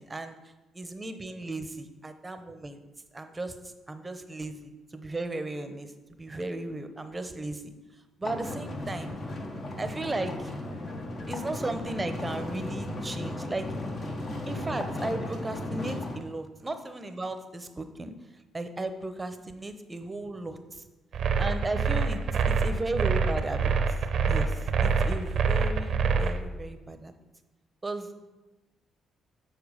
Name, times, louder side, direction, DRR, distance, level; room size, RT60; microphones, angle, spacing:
voice 1, 0.0-2.8 3.1-9.2 9.8-10.5 11.3-13.7 14.4-20.9 21.4-23.7 24.3-27.1 27.8-28.1, right 2 dB, 20° right, 8 dB, 0.8 m, -36 dB
sound 1, 8.2-16.2, left 1 dB, 50° left, 1.4 m, -35 dB
sound 2, 21.1-26.4, right 5 dB, 65° right, 0.7 m, -25 dB
7.1 x 4.6 x 6.4 m, 1.1 s
cardioid pair, 90°, 0 cm